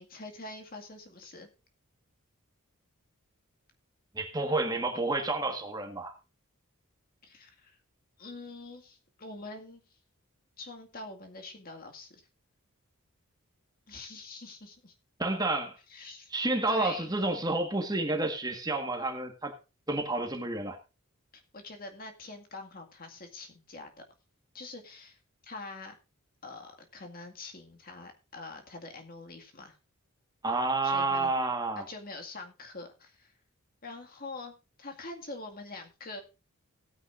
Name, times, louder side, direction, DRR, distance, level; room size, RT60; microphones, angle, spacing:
voice 1, 0.0-1.5 7.2-7.8 8.2-9.8 10.6-12.3 13.9-14.9 15.9-16.3 16.7-17.1 21.3-24.0 24.5-26.0 26.4-29.8 30.8-31.3 31.8-33.3 33.8-34.5 34.8-36.2, left 3 dB, 45° left, 2.1 m, -44 dB
voice 2, 4.1-6.1 15.2-15.7 16.3-19.6 19.9-20.8 30.4-31.8, right 2 dB, 20° right, 1.6 m, -30 dB
17.0 x 9.6 x 2.6 m
head